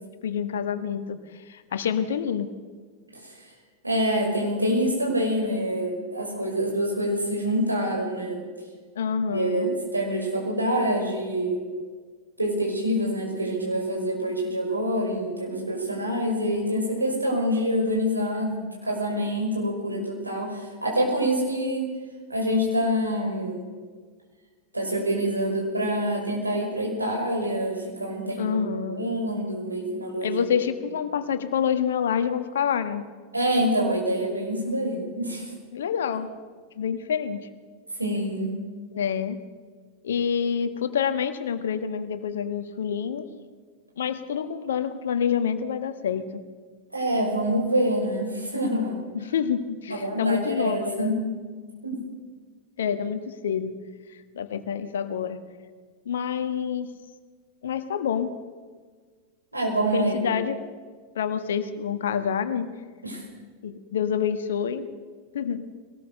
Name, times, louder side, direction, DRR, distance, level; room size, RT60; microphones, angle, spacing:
voice 1, 0.2-2.5 8.9-9.8 28.4-29.1 30.2-33.0 35.7-36.3 36.7-37.5 38.9-39.4 40.0-43.2 44.0-46.4 49.1-51.2 52.8-53.7 54.1-55.4 56.0-56.9 57.6-58.3 59.9-60.6 61.1-62.7 63.6-64.9 65.3-65.7, left 7 dB, 65° left, 10 dB, 1.4 m, -27 dB
voice 2, 3.8-8.4 9.3-11.6 12.4-21.9 22.3-23.6 24.7-28.5 29.0-30.4 33.3-35.5 38.0-38.5 46.9-49.0 49.9-51.2 51.8-52.0 59.5-60.3 63.0-63.2, equal, 85° right, -1 dB, 5.6 m, -26 dB
22.0 x 18.5 x 6.7 m, 1.5 s
figure-of-eight pair, 90°, 0 cm